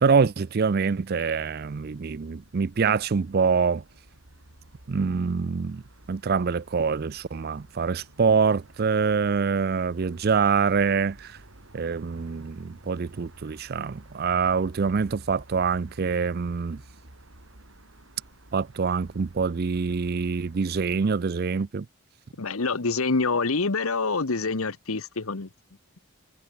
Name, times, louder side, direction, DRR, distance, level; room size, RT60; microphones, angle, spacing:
voice 1, 0.0-3.8 4.9-5.8 6.1-11.4 11.7-16.8 18.5-21.9, right 5 dB, 45° right, 0.4 m, -25 dB
sound 1, 1.2-21.2, right 1 dB, 65° right, 3.5 m, -52 dB
voice 2, 22.4-25.5, left 4 dB, 75° left, 1.2 m, -26 dB
head